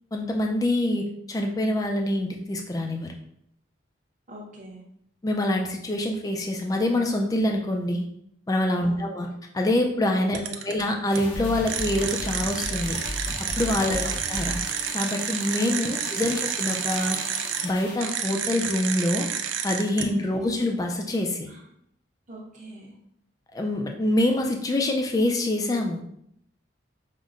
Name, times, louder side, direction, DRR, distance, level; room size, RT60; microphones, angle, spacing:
voice 1, 0.1-3.1 5.2-8.0 8.5-9.3 9.5-13.0 13.6-14.6 14.9-17.2 17.6-19.3 19.6-21.5 23.5-26.0, left 1 dB, 20° left, 2 dB, 0.3 m, -25 dB
voice 2, 4.3-4.8 8.8-9.1 10.4-10.6 13.8-14.2 15.8-16.3 20.0-20.6 21.4-21.6 22.3-22.9, right 1 dB, 40° right, -3 dB, 0.8 m, -44 dB
sound 1, 10.3-10.8 11.1-11.2 11.7-17.7 18.0-20.0, right 8 dB, 75° right, 0.4 m, -30 dB
sound 2, 11.1-19.7 20.0-20.1, left 1 dB, 80° left, 1.2 m, -37 dB
5.3 x 2.1 x 2.4 m, 0.73 s
head